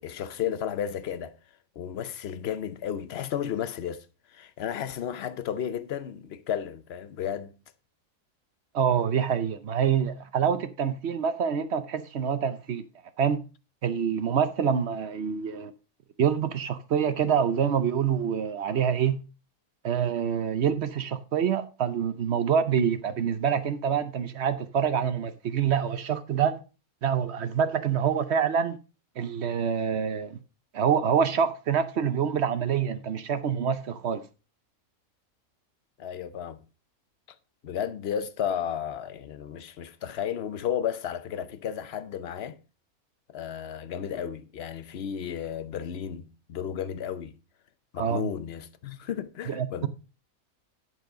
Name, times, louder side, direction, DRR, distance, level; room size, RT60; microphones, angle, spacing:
voice 1, 0.0-1.3 1.8-4.0 4.3-7.5 36.0-36.6 37.6-42.6 43.3-47.3 47.9-49.9, left 9 dB, 55° left, 0.8 m, -33 dB
voice 2, 8.7-12.8 13.2-13.4 13.8-15.7 16.2-19.2 19.8-26.6 27.0-28.8 29.2-30.4 30.7-34.2 48.0-48.3 49.5-49.9, right 7 dB, 55° right, 0.9 m, -26 dB
10.5 x 4.6 x 4.9 m
omnidirectional pair, 1.5 m